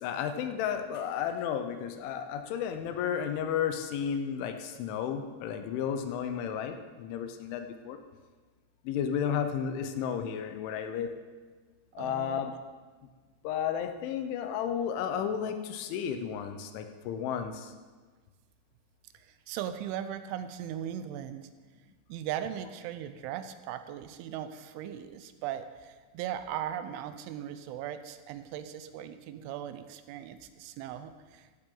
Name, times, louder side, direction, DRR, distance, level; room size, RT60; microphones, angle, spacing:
voice 1, 0.0-8.0 8.9-11.1 12.0-12.5 13.4-17.5, left 8 dB, 85° left, 7 dB, 3.4 m, -33 dB
voice 2, 12.0-12.4 19.1-21.5 22.1-31.5, right 10 dB, 90° right, 10 dB, 3.2 m, -38 dB
15.5 x 12.0 x 3.9 m, 1.4 s
omnidirectional pair, 5.3 m